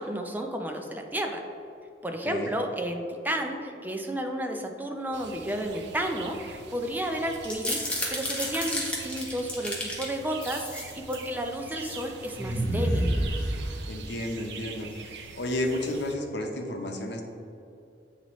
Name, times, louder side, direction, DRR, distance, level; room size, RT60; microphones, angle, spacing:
voice 1, 0.0-1.4 2.0-13.1, right 1 dB, 10° right, 3 dB, 0.5 m, -32 dB
sound 1, 5.1-16.2, right 5 dB, 75° right, 0.5 m, -44 dB
sound 2, 7.3-10.1 10.4-11.3 11.7-12.0 12.4-14.0, equal, 5° left, 1.0 m, -30 dB
voice 2, 13.9-14.9 15.4-17.2, left 1 dB, 75° left, 3 dB, 0.7 m, -31 dB
8.4 x 4.1 x 3.0 m, 2.6 s
head